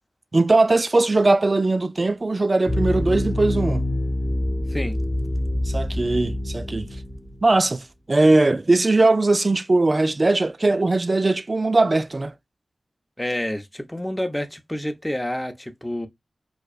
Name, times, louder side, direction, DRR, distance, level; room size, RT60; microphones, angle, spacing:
voice 1, 0.3-3.8 5.6-6.9 7.4-12.3, right 2 dB, 45° right, 0.4 m, -20 dB
sound 1, 2.7-7.7, left 1 dB, 15° right, 1.4 m, -26 dB
voice 2, 13.2-16.1, left 1 dB, 10° left, 0.7 m, -28 dB
4.7 x 2.2 x 2.4 m
cardioid pair, 55°, 0 cm